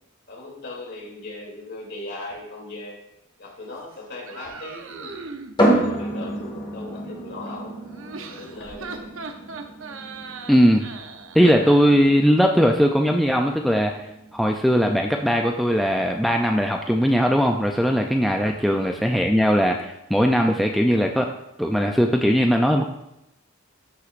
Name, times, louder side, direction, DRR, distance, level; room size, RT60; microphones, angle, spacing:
voice 1, 0.3-3.0 3.4-5.2 5.6-7.8 8.3-9.1 18.5-18.9, left 2 dB, 55° left, -3 dB, 2.8 m, -38 dB
sound 1, 4.2-5.6 7.9-11.9, right 4 dB, 65° right, 0.8 m, -38 dB
sound 2, 5.6-19.1, right 1 dB, 20° left, 1.9 m, -30 dB
voice 2, 10.5-10.8 11.3-13.9 14.3-21.3 21.6-22.9, equal, ahead, 2 dB, 0.4 m, -19 dB
14.0 x 6.0 x 2.5 m, 0.86 s
head